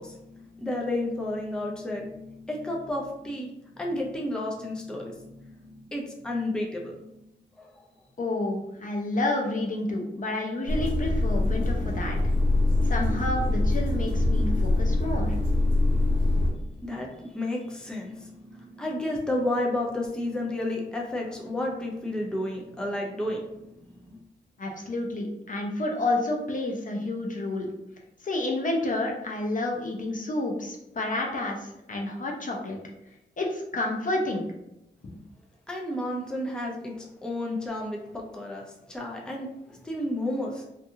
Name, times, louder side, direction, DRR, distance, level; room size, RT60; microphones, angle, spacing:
voice 1, 0.0-7.2 7.6-7.7 16.6-24.2 35.7-40.6, left 1 dB, 5° left, -1 dB, 0.5 m, -32 dB
voice 2, 8.2-12.2 12.8-15.3 24.6-27.7 28.2-32.8 33.4-34.4 35.0-35.2, left 2 dB, 45° left, 0 dB, 0.6 m, -30 dB
sound 1, 10.7-16.5, left 2 dB, 85° right, 0.7 m, -24 dB
2.6 x 2.4 x 2.7 m, 0.87 s
cardioid pair, 75°, 19 cm